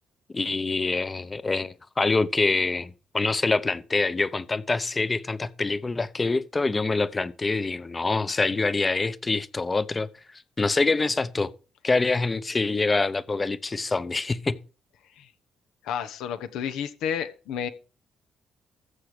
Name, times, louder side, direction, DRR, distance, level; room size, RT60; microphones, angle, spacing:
voice 1, 0.3-10.1 10.6-11.5 11.8-14.6, left 3 dB, 25° left, 0.8 m, -25 dB
voice 2, 15.8-17.7, left 8 dB, 90° left, 1.1 m, -31 dB
14.5 x 7.5 x 4.9 m
cardioid pair, 90°, 0 cm